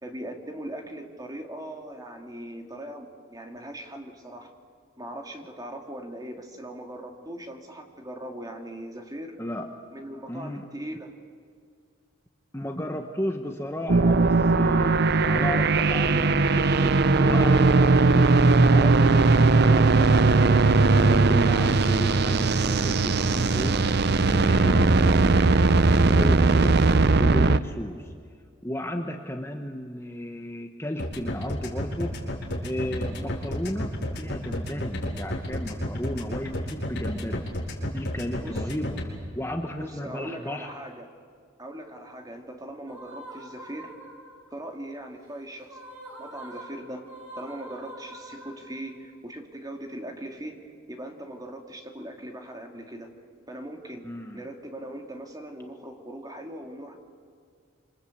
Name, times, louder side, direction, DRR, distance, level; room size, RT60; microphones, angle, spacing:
voice 1, 0.0-4.5 5.0-9.4 9.9-11.1 38.4-38.6 39.8-41.1 41.6-43.9 44.5-45.8 46.2-47.1 47.4-53.2 53.5-54.1 54.3-57.0, right 1 dB, 20° right, 3 dB, 2.5 m, -40 dB
voice 2, 10.3-10.7 12.5-18.3 18.6-23.8 24.3-26.8 27.2-28.1 28.6-32.2 32.6-37.5 37.9-40.7 54.0-54.5, left 1 dB, 15° left, 3 dB, 1.1 m, -34 dB
sound 1, 13.9-27.6, right 3 dB, 55° right, 0.7 m, -19 dB
sound 2, 31.0-39.0, left 1 dB, 55° left, 5.5 m, -31 dB
sound 3, 42.9-44.5 45.6-49.0, right 1 dB, 90° right, 7.0 m, -44 dB
27.0 x 26.0 x 8.5 m, 2.2 s
head